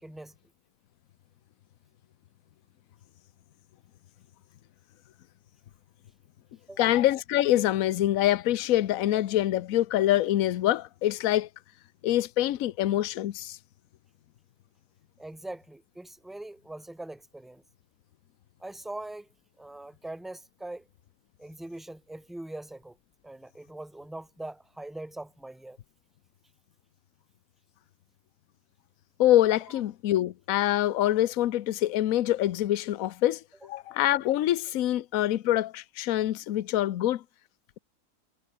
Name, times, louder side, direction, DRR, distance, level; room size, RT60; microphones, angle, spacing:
voice 1, 0.0-0.3 6.7-6.9 15.2-17.6 18.6-19.3 19.6-20.8 21.4-23.0 23.2-25.8, right 1 dB, ahead, 0.8 m, -42 dB
voice 2, 6.8-11.5 12.0-13.6 29.2-37.2, left 13 dB, 65° left, 1.1 m, -25 dB
omnidirectional pair, 1.7 m